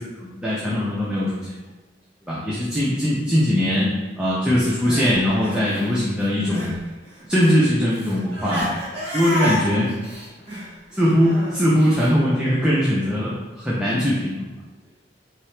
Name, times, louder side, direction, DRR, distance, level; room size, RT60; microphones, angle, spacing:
voice 1, 0.2-1.6 2.3-6.8 7.3-8.7 9.1-9.9 10.9-13.3 13.6-14.5, equal, 5° right, -8 dB, 0.6 m, -21 dB
Crying sobbing, 4.6-6.8 7.0-12.1, equal, 30° right, 1.3 m, -31 dB
4.3 x 2.8 x 3.2 m, 1.2 s
head